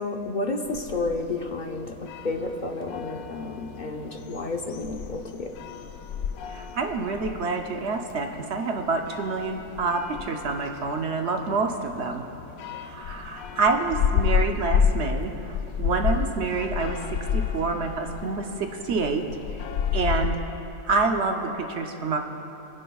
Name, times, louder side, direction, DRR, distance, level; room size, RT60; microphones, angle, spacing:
voice 1, 0.0-5.5, left 2 dB, 45° left, 3 dB, 0.7 m, -31 dB
sound 1, 0.6-20.3, left 7 dB, 80° left, 1.0 m, -31 dB
voice 2, 6.5-12.2 12.8-19.2 19.9-20.4 20.9-22.2, right 4 dB, 60° right, 4 dB, 0.9 m, -27 dB
25.5 x 10.0 x 2.3 m, 3.0 s
omnidirectional pair, 1.4 m